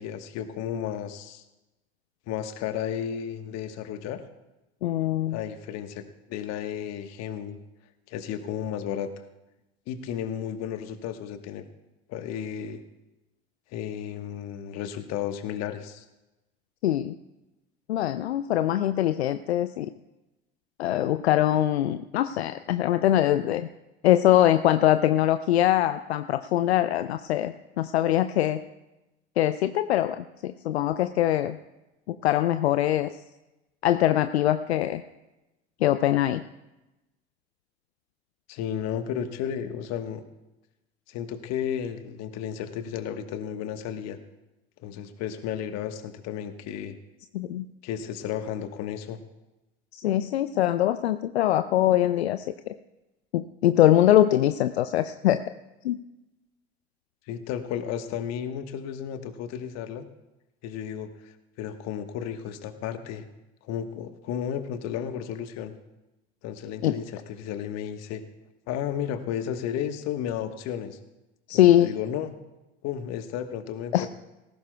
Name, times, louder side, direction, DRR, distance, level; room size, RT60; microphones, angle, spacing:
voice 1, 0.0-1.4 2.3-4.2 5.3-7.6 8.1-9.1 9.9-11.7 12.1-12.8 13.7-16.0 38.5-40.2 41.1-44.2 44.8-46.9 47.8-49.2 57.3-60.1 60.6-63.3 63.6-65.7 66.4-68.2 68.7-71.0 71.5-72.3 72.8-74.1, left 9 dB, 55° left, 8 dB, 1.3 m, -33 dB
voice 2, 4.8-5.4 16.8-17.1 17.9-19.9 20.8-23.7 24.0-28.6 29.4-31.6 32.1-33.1 33.8-35.0 35.8-36.4 47.3-47.7 49.9-52.7 53.3-55.4 55.8-56.0 66.8-67.0 71.5-71.9 73.9-74.1, left 13 dB, 80° left, 11 dB, 0.5 m, -23 dB
18.5 x 15.5 x 2.3 m, 0.99 s
hypercardioid pair, 70°, 32 cm